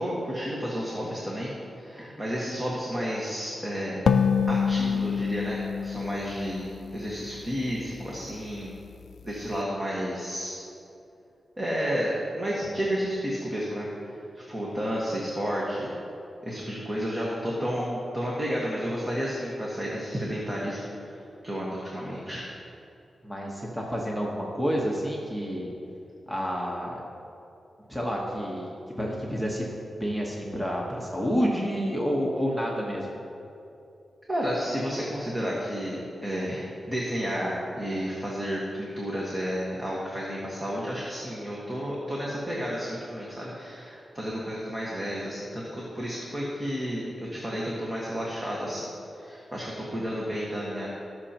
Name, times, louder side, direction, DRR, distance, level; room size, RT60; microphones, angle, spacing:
voice 1, 0.0-4.1 4.5-8.7 9.2-10.6 11.6-15.9 16.4-22.4 34.3-50.9, equal, 25° right, -5 dB, 1.5 m, -31 dB
sound 1, 4.1-7.5, left 6 dB, 75° left, 0.4 m, -26 dB
voice 2, 23.2-25.7 26.3-27.0 27.9-28.7 29.0-29.6 30.0-33.1, equal, 5° right, -3 dB, 1.2 m, -29 dB
18.0 x 6.4 x 2.9 m, 2.7 s
wide cardioid pair, 120°, 0 cm